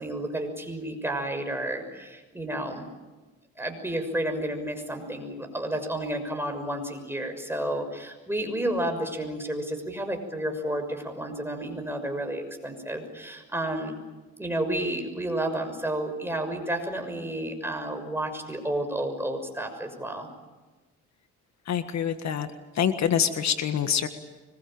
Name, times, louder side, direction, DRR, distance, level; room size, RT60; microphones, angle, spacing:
voice 1, 0.0-2.9 3.6-14.0 14.4-20.3, right 1 dB, 10° right, 4 dB, 6.2 m, -31 dB
voice 2, 21.7-22.5 22.7-24.1, left 8 dB, 65° left, 9 dB, 1.7 m, -25 dB
24.5 x 22.0 x 9.0 m, 1.2 s
cardioid pair, 90°, 30 cm